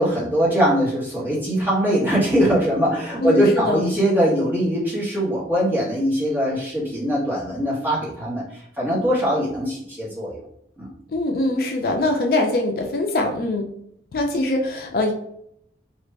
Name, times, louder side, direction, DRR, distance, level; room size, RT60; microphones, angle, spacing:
voice 1, 0.0-10.4 10.8-10.9, equal, 10° right, -8 dB, 1.3 m, -21 dB
voice 2, 3.2-3.8 11.1-13.7 14.1-15.1, left 2 dB, 55° left, 3 dB, 0.4 m, -22 dB
2.9 x 2.5 x 3.3 m, 0.74 s
head